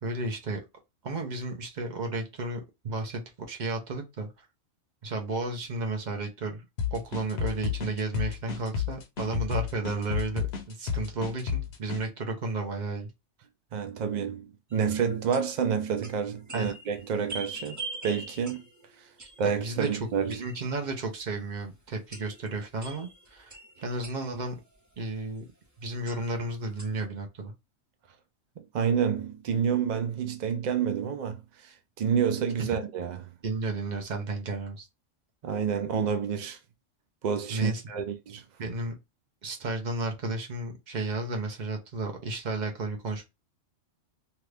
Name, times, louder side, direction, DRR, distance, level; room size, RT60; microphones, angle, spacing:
voice 1, 0.0-0.6 1.0-4.5 5.0-6.7 6.9-13.1 16.5-16.7 19.2-23.5 23.8-24.6 25.0-25.5 25.8-27.5 33.4-34.9 37.5-38.0 38.6-38.9 39.4-43.3, right 2 dB, 40° right, 0.8 m, -33 dB
sound 1, 6.8-12.0, left 7 dB, 60° left, 0.9 m, -31 dB
voice 2, 13.7-18.6 19.4-20.4 28.7-33.2 35.4-36.6 37.2-38.4, right 7 dB, 80° right, 0.4 m, -29 dB
sound 2, 14.7-20.9 21.3-21.4 21.9-24.9 25.6-25.7 26.0-27.0, right 2 dB, 20° right, 0.5 m, -44 dB
2.8 x 2.4 x 3.3 m
omnidirectional pair, 1.3 m